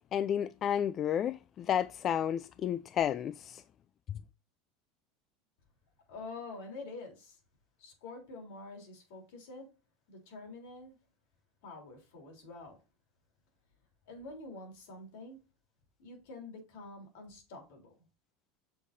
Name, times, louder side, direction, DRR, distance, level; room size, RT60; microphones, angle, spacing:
voice 1, 0.0-3.6, left 9 dB, 40° left, 0.3 m, -32 dB
voice 2, 6.1-7.4 7.8-9.7 10.1-11.0 11.6-12.8 14.1-15.4 16.0-17.9, left 3 dB, 75° left, 3.4 m, -47 dB
7.2 x 6.5 x 2.7 m
supercardioid pair, 110°, 0 cm